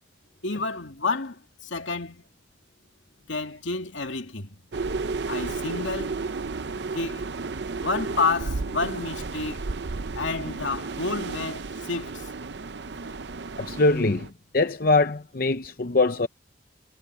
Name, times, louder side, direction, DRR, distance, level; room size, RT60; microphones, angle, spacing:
voice 1, 0.4-2.2 3.3-4.6 5.3-6.2 6.9-7.2 7.8-9.6 10.1-12.3, left 3 dB, 80° left, 2.6 m, -30 dB
sound 1, 4.7-14.3, right 4 dB, 65° right, 0.7 m, -33 dB
voice 2, 13.6-14.3 14.5-16.3, left 3 dB, 50° left, 0.7 m, -22 dB
head